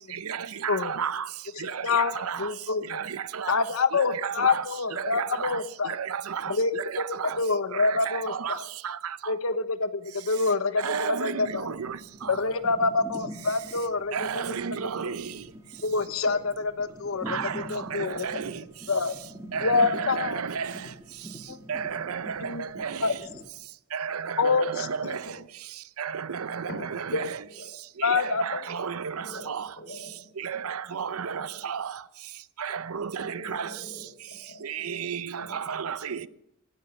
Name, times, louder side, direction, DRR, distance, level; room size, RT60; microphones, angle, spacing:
voice 1, 0.1-1.3 1.6-2.5 2.8-3.6 3.9-7.4 7.7-9.3 10.8-12.4 14.1-15.4 17.3-18.6 19.5-20.9 21.7-23.2 23.9-25.4 26.0-27.4 28.0-29.7 30.4-32.0 32.6-33.8 34.6-36.3, right 7 dB, 90° right, 0.6 m, -33 dB
voice 2, 1.6-2.1 2.4-3.0 3.5-6.0 6.5-6.7 7.4-8.6 9.3-11.7 12.3-14.3 15.8-17.4 17.7-18.3 18.9-19.1 19.6-20.5 21.5-21.6 22.4-22.6 23.0-23.1 24.4-24.9 28.0-28.6, left 4 dB, 75° left, 1.0 m, -26 dB
sound 1, 11.4-23.5, equal, 15° right, 1.6 m, -44 dB
voice 3, 26.7-27.7 29.2-29.5 29.8-30.3 31.3-31.5 33.2-35.0 35.4-35.6, left 1 dB, 55° left, 5.7 m, -44 dB
17.0 x 12.0 x 6.5 m
head